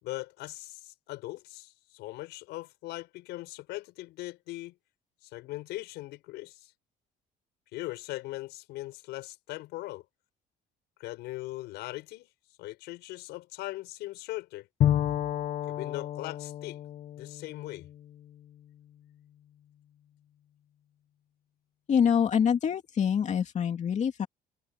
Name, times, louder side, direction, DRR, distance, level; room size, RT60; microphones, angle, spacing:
voice 1, 0.0-4.8 5.2-6.7 7.7-10.0 11.0-12.3 12.6-14.7 15.6-16.8 17.2-17.9, left 18 dB, 90° left, 5.8 m, -40 dB
Bowed string instrument, 14.8-18.5, left 11 dB, 65° left, 1.3 m, -31 dB
voice 2, 21.9-24.3, left 7 dB, 45° left, 2.6 m, -25 dB
cardioid pair, 110°, 17 cm